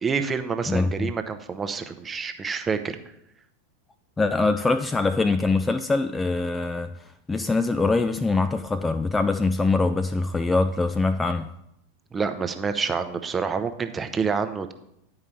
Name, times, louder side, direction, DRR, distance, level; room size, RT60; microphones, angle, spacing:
voice 1, 0.0-3.0 12.1-14.7, right 5 dB, 20° right, 0.7 m, -27 dB
voice 2, 0.7-1.1 4.2-11.5, left 3 dB, 10° left, 0.3 m, -23 dB
9.6 x 4.8 x 5.5 m
figure-of-eight pair, 90°, 0 cm